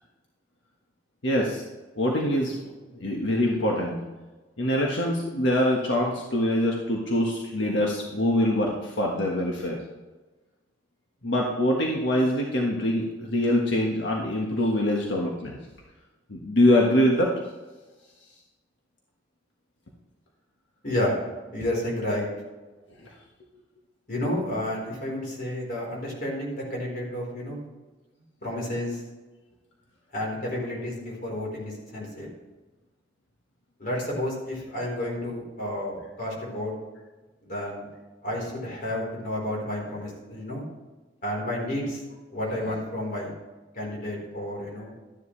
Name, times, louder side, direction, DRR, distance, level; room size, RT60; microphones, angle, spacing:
voice 1, 1.2-1.6 2.0-2.6 2.9-4.0 4.6-9.8 11.2-15.6 16.3-17.3, left 1 dB, 85° left, -1 dB, 1.5 m, -24 dB
voice 2, 20.8-21.2 21.5-22.3 24.1-27.6 28.4-29.0 30.1-32.3 33.8-36.7 37.4-37.8 38.2-40.6 41.2-42.0 42.3-43.3 43.7-44.9, left 1 dB, 50° left, -2 dB, 4.2 m, -31 dB
13.0 x 10.0 x 3.3 m, 1.2 s
head